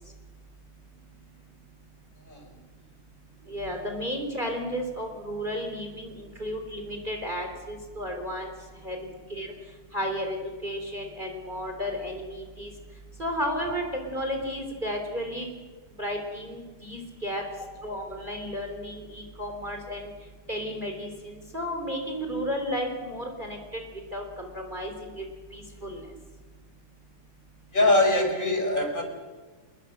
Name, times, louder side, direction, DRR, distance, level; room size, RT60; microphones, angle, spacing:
voice 1, 3.5-8.5 8.8-9.5 9.9-10.4 10.6-12.7 13.2-15.5 16.0-17.4 17.8-20.1 20.5-23.8 24.1-25.2 25.5-26.1, equal, 20° right, 3 dB, 3.8 m, -33 dB
voice 2, 27.7-29.0, left 2 dB, 20° left, 5 dB, 4.8 m, -23 dB
30.0 x 21.5 x 6.6 m, 1.4 s
omnidirectional pair, 2.3 m